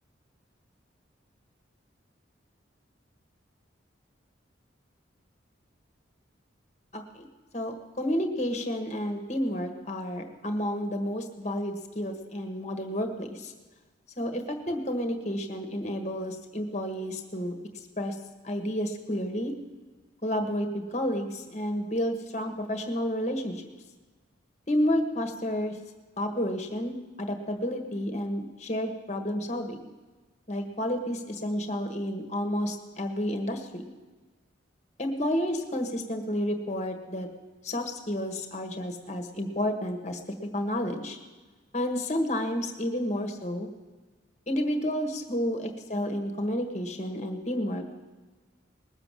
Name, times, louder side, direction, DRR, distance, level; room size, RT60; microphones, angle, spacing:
voice 1, 6.9-7.3 7.5-13.5 14.2-17.5 18.0-18.2 18.4-19.5 20.2-23.6 24.7-25.8 26.2-29.9 30.5-33.9 35.0-37.3 37.6-40.2 40.5-41.2 41.7-43.7 44.5-48.0, equal, 35° left, 5 dB, 1.5 m, -30 dB
20.0 x 7.0 x 7.4 m, 1.3 s
head